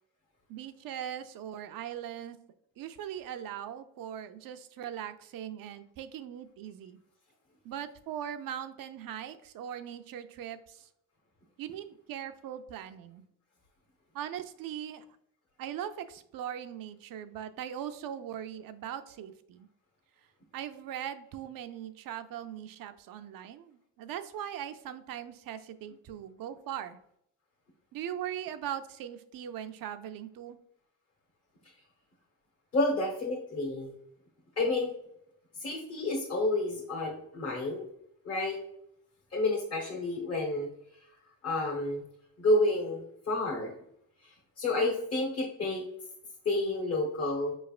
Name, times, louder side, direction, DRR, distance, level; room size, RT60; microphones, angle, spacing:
voice 1, 0.5-2.4 2.8-7.0 7.6-10.9 11.6-13.2 14.1-15.1 15.6-19.7 20.5-27.0 27.9-30.6, right 10 dB, 70° right, 10 dB, 0.5 m, -40 dB
voice 2, 32.7-33.9 34.6-34.9 35.6-37.8 38.2-38.6 39.3-40.7 41.4-42.0 42.4-43.7 44.2-45.8 46.4-47.5, left 2 dB, 40° left, -3 dB, 1.0 m, -30 dB
4.8 x 3.2 x 2.4 m, 0.73 s
cardioid pair, 85°, 36 cm